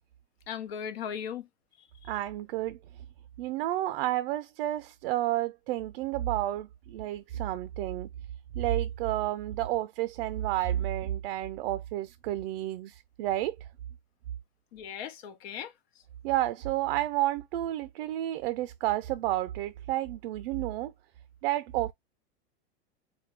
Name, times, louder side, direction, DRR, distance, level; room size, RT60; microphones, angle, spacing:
voice 1, 0.5-1.5 14.7-15.7, left 8 dB, 65° left, 1.0 m, -37 dB
voice 2, 2.1-2.8 3.4-8.1 8.5-13.5 16.2-20.9 21.4-21.9, right 14 dB, 60° right, 0.5 m, -30 dB
4.3 x 2.3 x 3.3 m
hypercardioid pair, 120°, 33 cm